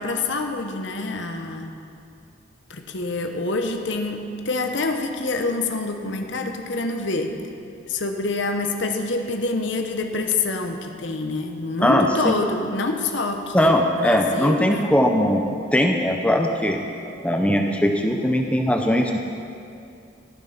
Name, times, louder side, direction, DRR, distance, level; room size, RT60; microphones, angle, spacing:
voice 1, 0.0-1.7 2.7-7.3 7.9-14.9, left 3 dB, 65° left, 5 dB, 0.9 m, -26 dB
voice 2, 11.8-12.4 13.5-15.4 15.7-16.8 17.2-19.2, equal, 5° left, 3 dB, 0.6 m, -20 dB
13.5 x 7.4 x 5.7 m, 2.5 s
head